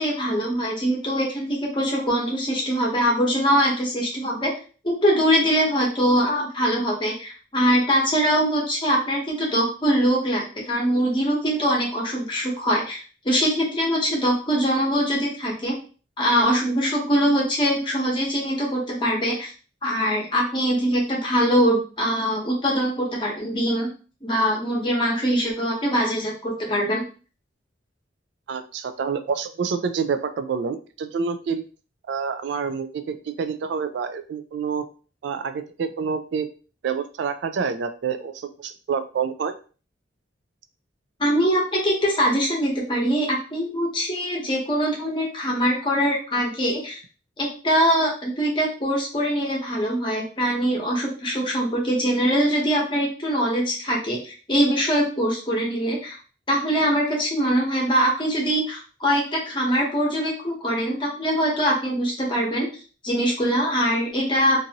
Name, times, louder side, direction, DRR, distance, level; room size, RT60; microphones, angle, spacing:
voice 1, 0.0-4.5 4.8-15.7 16.2-19.5 19.8-23.9 24.2-27.0 41.2-47.0 47.4-56.2 56.5-62.7 63.0-64.7, equal, 25° left, -2 dB, 0.9 m, -23 dB
voice 2, 28.5-31.6 32.1-34.8 35.2-36.5 36.8-39.5, right 6 dB, 65° right, 9 dB, 0.3 m, -27 dB
2.6 x 2.6 x 2.8 m, 0.37 s
head